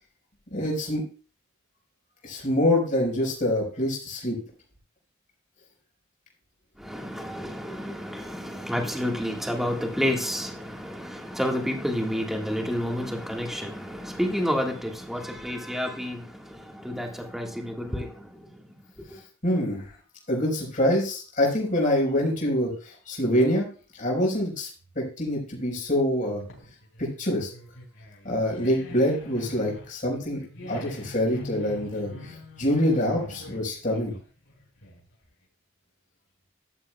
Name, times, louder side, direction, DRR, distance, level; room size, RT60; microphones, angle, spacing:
voice 1, 0.5-1.0 2.2-4.4 19.4-19.9 20.3-23.7 24.0-24.7 24.9-26.4 27.0-27.5 28.2-30.4 30.7-34.1, left 1 dB, 40° left, -2 dB, 4.5 m, -25 dB
voice 2, 6.8-18.6 19.1-19.2, equal, ahead, 1 dB, 1.6 m, -30 dB
sound 1, 26.2-35.3, left 1 dB, 75° left, 4.6 m, -43 dB
13.5 x 11.5 x 2.3 m, 0.37 s
head